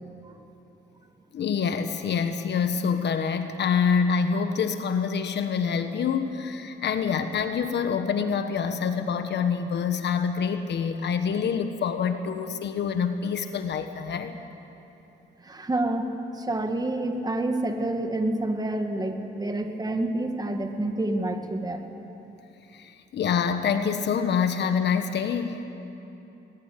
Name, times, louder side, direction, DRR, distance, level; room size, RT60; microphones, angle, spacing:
voice 1, 1.3-14.4 22.7-25.6, left 6 dB, 60° left, 8 dB, 1.3 m, -26 dB
voice 2, 15.4-21.8, right 1 dB, 20° right, 5 dB, 2.2 m, -28 dB
21.0 x 20.5 x 8.4 m, 2.9 s
cardioid pair, 90°, 20 cm